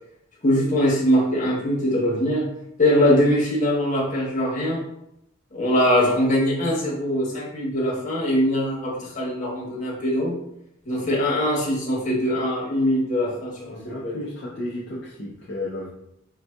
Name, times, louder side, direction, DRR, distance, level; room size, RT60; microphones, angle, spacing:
voice 1, 0.4-2.4 2.8-4.8 5.5-10.4 10.9-14.1, equal, 40° left, -5 dB, 1.1 m, -22 dB
voice 2, 13.7-15.9, left 1 dB, 55° left, -6 dB, 0.5 m, -33 dB
3.7 x 2.6 x 2.2 m, 0.80 s
head